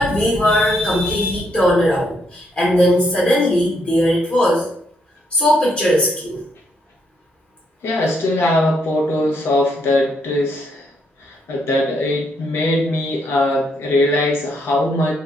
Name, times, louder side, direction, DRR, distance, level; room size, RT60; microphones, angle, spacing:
voice 1, 0.0-4.7 5.3-6.4, equal, 35° left, -5 dB, 1.1 m, -17 dB
voice 2, 7.8-10.9 11.2-15.1, left 1 dB, 85° left, -1 dB, 0.8 m, -20 dB
2.6 x 2.3 x 3.5 m, 0.62 s
wide cardioid pair, 170°, 4 cm